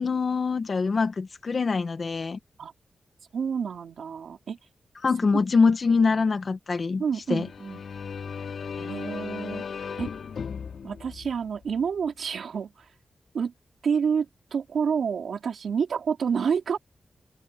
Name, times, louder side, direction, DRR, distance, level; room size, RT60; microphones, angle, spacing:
voice 1, 0.0-2.4 5.0-7.0 7.3-7.5, left 4 dB, 40° left, 1.3 m, -24 dB
voice 2, 3.3-4.6 7.0-7.8 8.8-9.6 10.0-10.1 10.8-12.9 13.3-13.5 13.8-16.8, right 6 dB, 75° right, 4.7 m, -28 dB
sound 1, 7.3-12.0, left 6 dB, 70° left, 3.6 m, -37 dB
wide cardioid pair, 175°, 0 cm